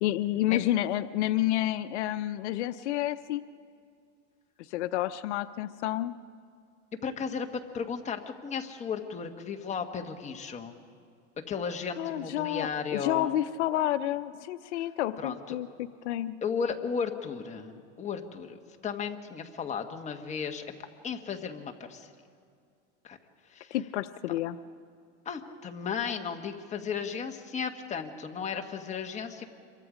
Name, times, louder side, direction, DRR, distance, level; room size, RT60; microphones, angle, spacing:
voice 1, 0.0-3.4 4.7-6.1 12.0-16.4 23.7-24.6, left 13 dB, 80° left, 12 dB, 0.7 m, -30 dB
voice 2, 7.0-10.8 11.5-13.3 15.2-15.6 16.4-20.6 21.0-22.1 23.0-23.2 23.5-23.8 25.2-29.5, left 6 dB, 20° left, 4 dB, 1.4 m, -35 dB
26.5 x 23.5 x 5.1 m, 2.3 s
supercardioid pair, 140°, 34 cm